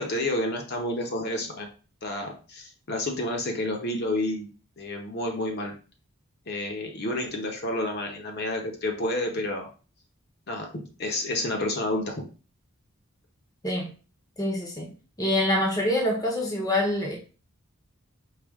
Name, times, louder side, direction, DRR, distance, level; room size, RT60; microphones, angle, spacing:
voice 1, 0.0-1.7 2.0-4.5 4.8-5.7 6.5-9.7 10.5-12.1, left 1 dB, 50° left, 0.7 m, -30 dB
voice 2, 14.4-14.9 15.2-17.2, left 1 dB, 15° left, 0.7 m, -25 dB
4.9 x 2.3 x 3.5 m
head